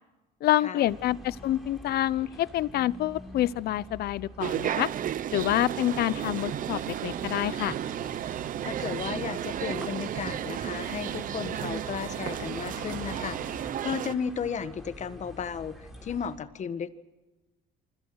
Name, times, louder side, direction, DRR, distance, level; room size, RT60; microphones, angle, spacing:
voice 1, 0.4-4.9 5.3-7.8, left 13 dB, 70° left, 20 dB, 0.8 m, -27 dB
sound 1, 0.8-16.4, equal, ahead, 6.2 m, -48 dB
sound 2, 4.4-14.1, right 10 dB, 55° right, 0.8 m, -33 dB
sound 3, 5.5-13.6, right 8 dB, 85° right, 3.1 m, -43 dB
voice 2, 8.4-16.9, left 7 dB, 45° left, 12 dB, 1.6 m, -34 dB
28.0 x 24.5 x 6.4 m, 1.1 s
cardioid pair, 110°, 17 cm